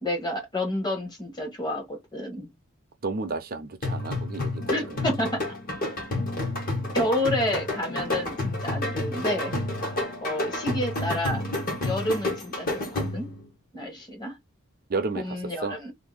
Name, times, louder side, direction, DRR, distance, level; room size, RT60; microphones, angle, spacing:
voice 1, 0.0-2.5 4.7-5.4 6.9-9.5 10.2-11.4 11.8-13.3 13.7-14.4 15.1-15.9, left 1 dB, 20° left, 1.1 m, -30 dB
voice 2, 3.0-4.6 4.9-5.1 14.9-15.8, right 3 dB, 45° right, 0.6 m, -32 dB
sound 1, 3.8-13.4, left 2 dB, 40° left, 1.3 m, -30 dB
sound 2, 4.6-13.5, left 1 dB, 80° left, 1.2 m, -45 dB
2.7 x 2.6 x 3.9 m
head